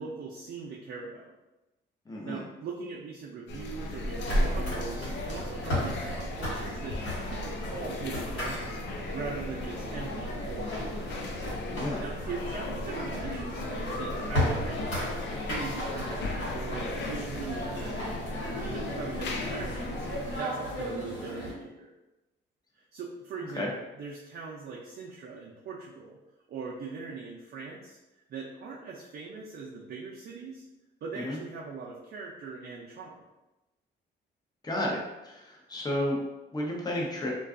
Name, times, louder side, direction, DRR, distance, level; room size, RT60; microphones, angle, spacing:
voice 1, 0.0-1.3 2.2-8.8 9.1-10.8 12.0-15.2 15.5-18.1 18.6-20.1 20.4-21.9 22.7-26.2 26.5-28.0 28.3-30.7 31.0-33.2, right 4 dB, 55° right, -4 dB, 0.4 m, -40 dB
voice 2, 2.1-2.4 11.7-12.0 23.6-23.7 31.2-31.4 34.6-36.2 36.5-37.3, left 1 dB, 20° left, -2 dB, 0.6 m, -32 dB
sound 1, 3.5-20.4, left 1 dB, 65° left, 0.4 m, -35 dB
sound 2, 4.2-21.5, equal, 85° left, 1.3 m, -36 dB
2.5 x 2.3 x 2.4 m, 1.0 s
cardioid pair, 90°, 20 cm